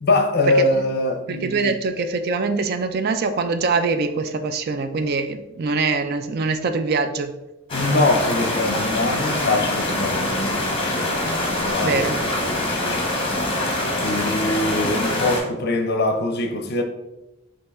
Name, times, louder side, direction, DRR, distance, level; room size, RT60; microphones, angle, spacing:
voice 1, 0.0-1.8 7.7-11.3 11.6-13.1 14.0-16.8, left 2 dB, 50° left, 0.6 m, -23 dB
voice 2, 1.3-7.4 11.8-12.2, right 4 dB, 50° right, 0.4 m, -23 dB
sound 1, 7.7-15.4, left 1 dB, 25° left, 1.0 m, -24 dB
5.3 x 2.9 x 3.5 m
head